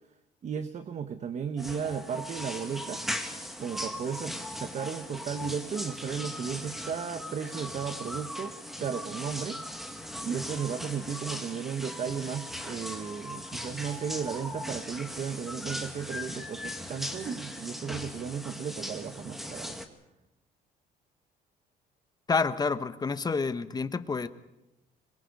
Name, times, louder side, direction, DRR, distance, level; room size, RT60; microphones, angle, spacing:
voice 1, 0.4-3.0 3.6-9.6 10.2-19.8, right 7 dB, 45° right, 10 dB, 1.1 m, -35 dB
sound 1, 1.6-19.9, equal, ahead, 2.0 m, -39 dB
voice 2, 22.3-24.3, left 4 dB, 25° left, 12 dB, 1.1 m, -28 dB
25.0 x 22.5 x 5.3 m, 0.92 s
cardioid pair, 110°, 17 cm